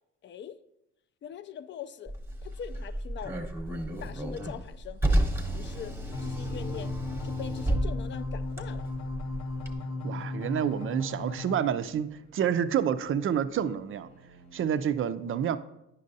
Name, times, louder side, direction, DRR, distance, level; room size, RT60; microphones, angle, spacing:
voice 1, 0.2-0.6 1.2-2.1 2.4-3.4 4.0-5.0 5.5-5.9 6.2-6.9 7.2-8.9, left 8 dB, 40° left, 14 dB, 0.4 m, -42 dB
Car, 2.1-9.7, right 1 dB, 10° right, 0.9 m, -32 dB
sound 1, 6.1-11.6, left 3 dB, 65° left, 0.7 m, -36 dB
sound 2, 6.5-14.8, right 1 dB, 85° left, 1.4 m, -56 dB
voice 2, 10.0-14.1 14.5-15.6, right 8 dB, 45° right, 12 dB, 0.4 m, -28 dB
9.7 x 5.2 x 2.7 m, 0.86 s
cardioid pair, 90°, 30 cm